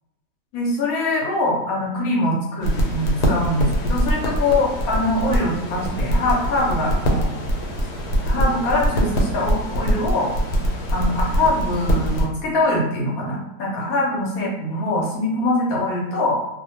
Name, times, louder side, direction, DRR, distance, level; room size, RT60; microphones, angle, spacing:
voice 1, 0.5-7.3 8.2-10.3 10.9-16.4, left 1 dB, 70° left, -2 dB, 1.0 m, -23 dB
sound 1, 2.6-12.3, equal, 90° left, 1.2 m, -23 dB
2.6 x 2.1 x 2.7 m, 1.0 s
omnidirectional pair, 1.7 m